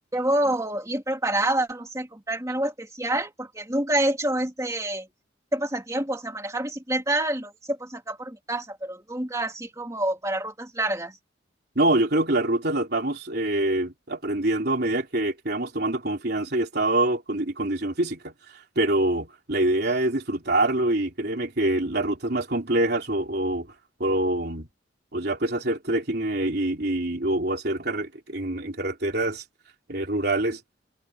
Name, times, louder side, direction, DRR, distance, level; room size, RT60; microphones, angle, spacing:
voice 1, 0.1-5.1 5.5-11.1, right 1 dB, 15° right, 2.5 m, -27 dB
voice 2, 11.8-18.3 18.8-23.7 24.0-24.7 25.1-29.4 29.9-30.6, right 1 dB, 55° right, 3.5 m, -25 dB
head